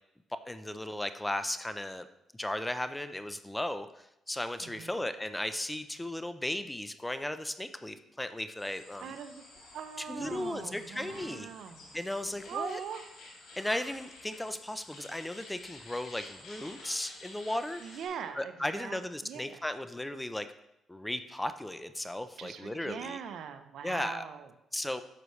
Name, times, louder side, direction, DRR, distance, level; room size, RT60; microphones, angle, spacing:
voice 1, 0.5-2.1 2.3-9.1 10.1-11.5 11.9-12.8 13.6-17.8 18.4-20.5 20.9-23.2 23.8-24.2 24.7-25.0, left 1 dB, 10° left, 10 dB, 0.6 m, -36 dB
voice 2, 4.6-5.0 9.0-9.4 9.7-11.9 12.5-13.0 17.8-19.6 22.4-24.5, right 7 dB, 75° right, 8 dB, 0.8 m, -42 dB
sound 1, 8.6-18.1, left 2 dB, 80° left, 3.5 m, -50 dB
11.0 x 6.7 x 3.2 m, 0.83 s
cardioid pair, 90°, 0 cm